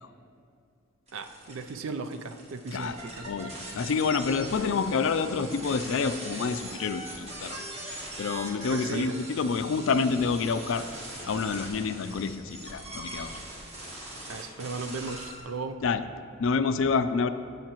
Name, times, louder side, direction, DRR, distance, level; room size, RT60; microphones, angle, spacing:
sound 1, 1.1-15.4, right 1 dB, 30° right, 1.5 m, -41 dB
voice 1, 1.1-3.3 8.7-9.2 14.3-15.8, right 3 dB, 70° right, 8 dB, 0.5 m, -36 dB
voice 2, 3.3-7.6 8.2-10.8 11.3-13.4 15.8-16.0 16.4-17.3, left 5 dB, 65° left, 11 dB, 0.4 m, -28 dB
15.0 x 5.7 x 3.0 m, 2.4 s
head